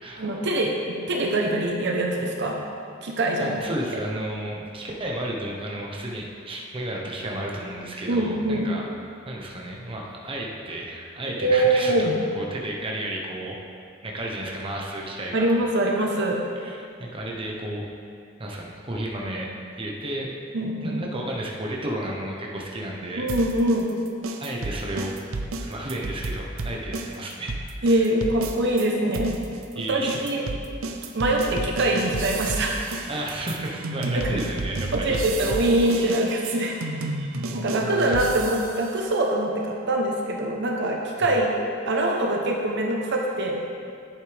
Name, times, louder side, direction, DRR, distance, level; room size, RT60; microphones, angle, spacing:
voice 1, 0.1-2.6 3.0-3.6 8.1-8.7 11.4-12.2 15.3-16.4 20.5-21.0 23.2-23.9 27.8-29.4 29.8-30.4 31.1-32.8 34.1-34.4 34.9-36.8 37.5-43.6, right 1 dB, 60° right, 0 dB, 0.9 m, -24 dB
voice 2, 3.4-8.9 9.2-12.1 12.3-13.6 14.0-15.5 16.6-17.8 18.4-19.5 19.8-20.3 20.8-23.3 24.4-25.2 25.6-28.0 29.7-30.3 31.3-31.4 33.1-35.2 35.9-36.2 37.9-38.2 41.2-41.3, right 1 dB, 25° right, -2 dB, 1.0 m, -32 dB
sound 1, 23.3-28.9 29.1-38.9, right 3 dB, 75° right, 0.6 m, -32 dB
10.5 x 7.8 x 3.4 m, 2.3 s
head